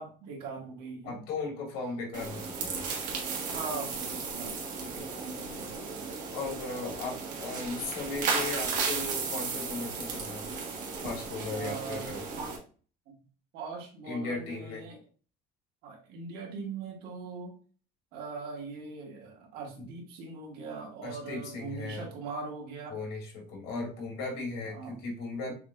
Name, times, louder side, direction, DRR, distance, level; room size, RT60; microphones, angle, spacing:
voice 1, 0.0-1.2 3.2-5.9 11.5-12.1 13.5-15.0 15.8-17.6 18.1-23.0 24.6-25.0 25.5-25.6, right 4 dB, 80° right, 0 dB, 1.6 m, -41 dB
voice 2, 1.1-2.9 6.3-10.4 11.0-12.3 14.1-14.8 19.8-19.9 21.0-22.1 22.9-25.5, left 3 dB, 80° left, 0 dB, 2.0 m, -37 dB
sound 1, 2.1-12.6, right 4 dB, 55° right, 1.4 m, -35 dB
6.6 x 2.6 x 2.5 m, 0.40 s
cardioid pair, 150°, 16 cm